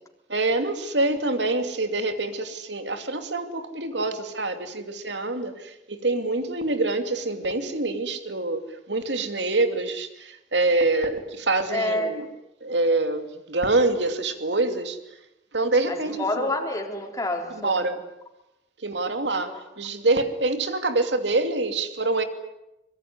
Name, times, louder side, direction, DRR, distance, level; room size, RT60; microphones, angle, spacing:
voice 1, 0.3-12.3 12.6-15.0 15.5-16.5 17.6-18.0 18.8-22.2, right 2 dB, 75° right, 8 dB, 2.8 m, -25 dB
voice 2, 11.7-12.2 15.9-17.9 19.5-19.6, left 1 dB, 20° left, 2 dB, 3.8 m, -28 dB
25.5 x 22.0 x 9.6 m, 0.90 s
head